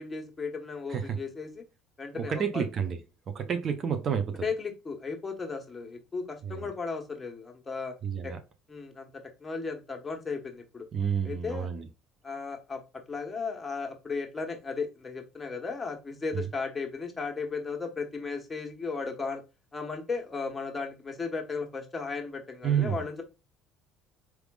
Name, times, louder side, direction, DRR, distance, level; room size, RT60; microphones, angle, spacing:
voice 1, 0.0-1.6 2.0-2.7 4.4-7.9 8.2-8.3 8.7-10.9 11.2-11.7 12.2-12.8 13.1-19.4 19.7-23.2, left 4 dB, 25° left, 1.5 m, -35 dB
voice 2, 2.1-3.0 3.3-4.5 6.4-6.7 8.0-8.4 10.9-11.9 16.3-16.5 22.6-23.0, right 7 dB, 45° right, 0.9 m, -30 dB
4.7 x 3.5 x 2.4 m
hypercardioid pair, 65°, 0 cm